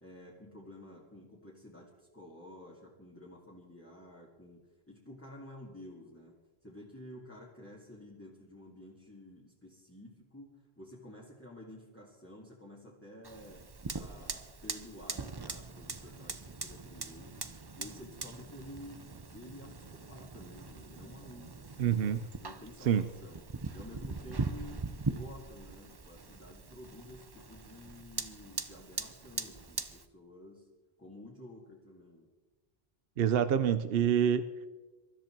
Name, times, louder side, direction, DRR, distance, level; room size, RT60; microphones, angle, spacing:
voice 1, 0.0-6.4 6.6-21.9 22.4-23.4 23.7-30.7 31.0-32.3, left 1 dB, 15° left, -4 dB, 2.3 m, -51 dB
Fire, 13.2-30.0, right 3 dB, 25° right, 0.7 m, -41 dB
voice 2, 21.8-22.2 22.8-23.1 33.2-34.4, right 9 dB, 75° right, 11 dB, 0.9 m, -27 dB
23.5 x 13.0 x 4.5 m, 1.2 s
omnidirectional pair, 1.0 m